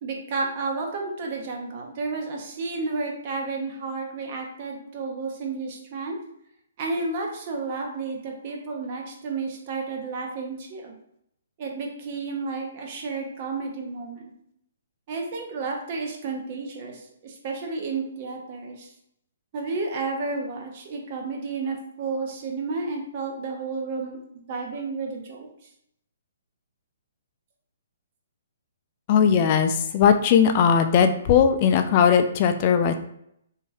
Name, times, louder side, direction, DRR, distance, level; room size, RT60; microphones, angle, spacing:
voice 1, 0.0-6.2 6.8-10.9 11.6-14.3 15.1-18.9 19.5-25.5, right 4 dB, 45° right, 1 dB, 0.7 m, -31 dB
voice 2, 29.1-32.9, left 7 dB, 40° left, 7 dB, 0.3 m, -19 dB
3.1 x 2.7 x 2.3 m, 0.74 s
hypercardioid pair, 135°, 0 cm